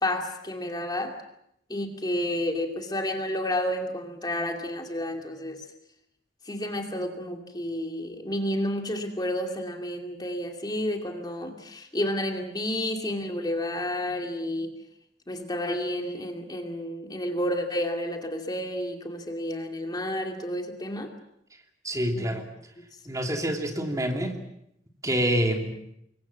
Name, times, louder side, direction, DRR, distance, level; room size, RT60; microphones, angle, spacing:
voice 1, 0.0-1.2 1.7-5.6 6.5-14.8 15.3-21.1 22.2-22.3, left 1 dB, 25° left, 4 dB, 2.5 m, -30 dB
voice 2, 21.8-22.5 23.0-24.4 25.0-25.7, equal, 20° right, 3 dB, 3.0 m, -27 dB
27.0 x 22.5 x 7.3 m, 0.74 s
head